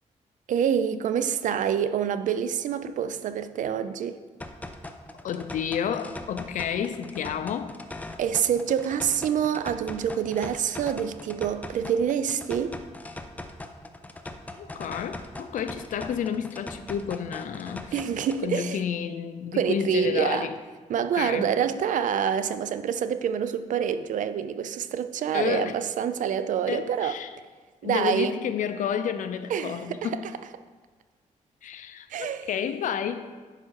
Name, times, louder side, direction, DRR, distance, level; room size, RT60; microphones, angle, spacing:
voice 1, 0.5-4.2 8.2-12.8 17.9-18.8 19.5-20.5 20.9-27.2 27.8-28.3 29.5-30.1 32.1-32.5, right 8 dB, 80° right, 0.5 m, -26 dB
sound 1, 4.4-18.4, left 2 dB, 10° left, 0.6 m, -41 dB
voice 2, 5.2-7.8 14.6-18.0 18.4-20.6 20.9-21.5 25.3-25.8 26.7-27.3 27.8-30.3 31.6-33.3, left 8 dB, 80° left, 0.6 m, -30 dB
10.5 x 4.9 x 4.6 m
cardioid pair, 115°, 13 cm